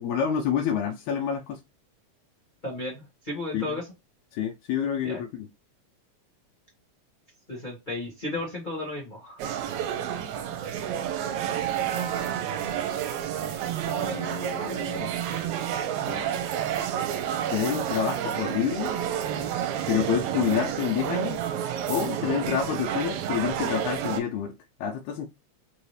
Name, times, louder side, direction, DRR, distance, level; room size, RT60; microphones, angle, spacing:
voice 1, 0.0-1.6 3.5-3.6 4.3-5.5 13.9-15.1 16.0-16.3 17.5-18.9 19.9-21.4 21.9-24.5 24.8-25.3, left 8 dB, 85° left, 2.0 m, -28 dB
voice 2, 2.6-3.9 5.0-5.2 7.5-9.4, left 2 dB, 55° left, 0.5 m, -34 dB
sound 1, 9.4-24.2, right 10 dB, 85° right, 1.9 m, -30 dB
4.8 x 2.7 x 3.1 m
omnidirectional pair, 3.3 m